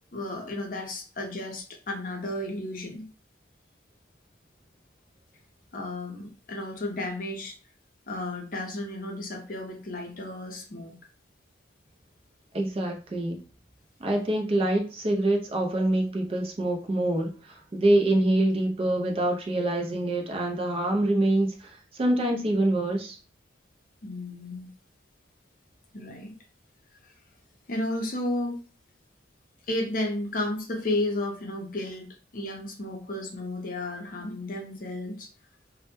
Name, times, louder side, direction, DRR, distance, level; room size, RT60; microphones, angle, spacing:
voice 1, 0.1-3.1 5.7-7.5 8.1-10.9 24.0-24.7 25.9-26.3 27.7-28.6 29.7-35.3, left 1 dB, 45° left, 2 dB, 0.5 m, -33 dB
voice 2, 12.5-13.4 14.0-23.2, right 1 dB, 30° right, 2 dB, 0.3 m, -25 dB
2.1 x 2.0 x 2.9 m, 0.37 s
head